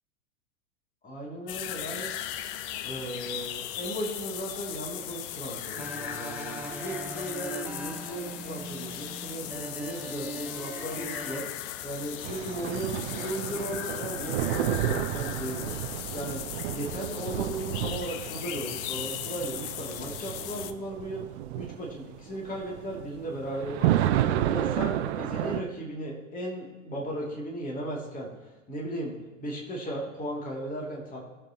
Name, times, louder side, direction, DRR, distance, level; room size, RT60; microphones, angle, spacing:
voice 1, 1.0-2.1 2.8-11.4 11.8-15.7 16.1-16.4 16.7-21.2 21.5-24.2 24.5-31.2, right 1 dB, 20° left, -2 dB, 2.8 m, -36 dB
sound 1, 1.5-20.7, left 11 dB, 45° left, 0.8 m, -38 dB
sound 2, 5.7-11.4, right 2 dB, 5° right, 0.4 m, -41 dB
sound 3, 12.2-25.6, right 12 dB, 55° right, 0.7 m, -31 dB
20.5 x 7.5 x 3.0 m, 1.2 s
figure-of-eight pair, 90°, 39 cm